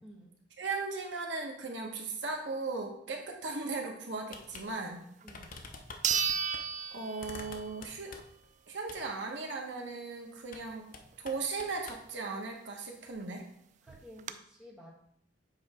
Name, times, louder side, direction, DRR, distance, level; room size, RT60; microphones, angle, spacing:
voice 1, 0.0-0.3 5.2-5.6 13.8-14.9, equal, 5° right, -4 dB, 1.2 m, -52 dB
voice 2, 0.6-5.1 6.9-8.1 8.7-10.9 11.2-13.4, right 3 dB, 70° right, 1 dB, 1.0 m, -37 dB
sound 1, 4.3-4.7 4.9-5.0 5.3-6.6 7.2-8.5 8.9-9.0 10.5-10.7 10.9-12.0, left 3 dB, 50° left, 0.7 m, -47 dB
sound 2, 5.2-5.3 6.0-7.8 8.2-8.3 12.9-13.0 13.2-13.3 13.9-14.3, right 7 dB, 40° right, 0.3 m, -33 dB
7.7 x 3.1 x 4.9 m, 0.71 s
head